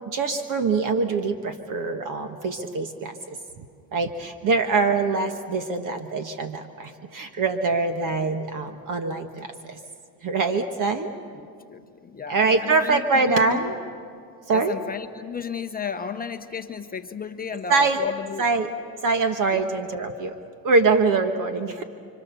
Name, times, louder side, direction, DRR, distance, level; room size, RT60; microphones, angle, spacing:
voice 1, 0.1-3.6 3.9-9.8 10.2-11.1 12.3-13.7 14.5-14.8 17.7-18.0 18.4-18.7 19.0-20.3 20.6-21.8, right 4 dB, 40° right, 7 dB, 1.4 m, -24 dB
voice 2, 11.3-13.7 14.5-18.4 19.5-19.6, left 6 dB, 20° left, 6 dB, 0.9 m, -34 dB
29.5 x 25.0 x 6.9 m, 2.3 s
supercardioid pair, 120°, 48 cm